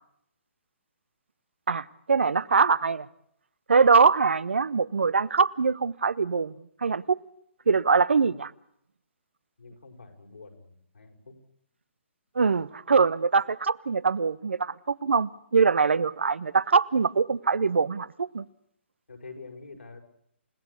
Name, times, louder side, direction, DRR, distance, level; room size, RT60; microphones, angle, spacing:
voice 1, 1.7-3.1 3.7-6.5 6.8-7.2 7.7-8.5 12.4-18.4, right 5 dB, 70° right, 1.0 m, -23 dB
voice 2, 9.6-11.4 19.1-20.0, left 4 dB, 75° left, 5.8 m, -46 dB
29.0 x 17.5 x 8.4 m
figure-of-eight pair, 135°, 7 cm